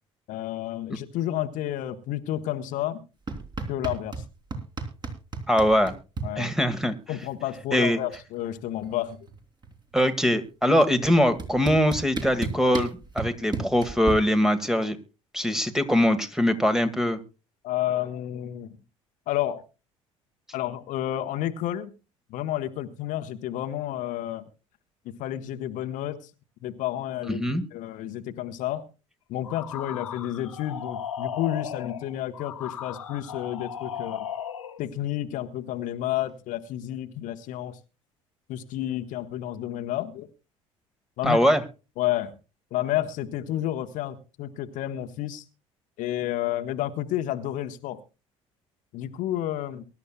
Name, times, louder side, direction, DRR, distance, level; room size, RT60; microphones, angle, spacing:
voice 1, 0.3-3.0 3.7-4.2 6.2-6.5 7.1-9.2 17.6-18.8 19.3-19.6 20.5-21.9 22.3-24.5 25.2-26.3 26.6-27.4 27.7-28.8 29.3-34.3 34.8-37.8 38.5-40.3 41.2-41.4 42.0-42.3 42.7-45.4 46.0-48.0 48.9-49.9, left 13 dB, 50° left, 9 dB, 1.1 m, -30 dB
sound 1, 3.3-4.3 4.5-6.3 7.5-7.6 7.9-8.3 8.6-9.9 10.8-10.9 11.4-14.1, right 3 dB, 25° right, 3.4 m, -33 dB
voice 2, 5.5-5.9 6.3-6.9 7.7-8.0 9.9-15.0 15.3-17.2 27.3-27.6 41.2-41.6, equal, 5° right, 10 dB, 1.7 m, -22 dB
sound 2, 29.4-34.8, left 9 dB, 75° left, 1.5 m, -36 dB
23.0 x 12.0 x 2.3 m, 0.31 s
figure-of-eight pair, 60°, 17 cm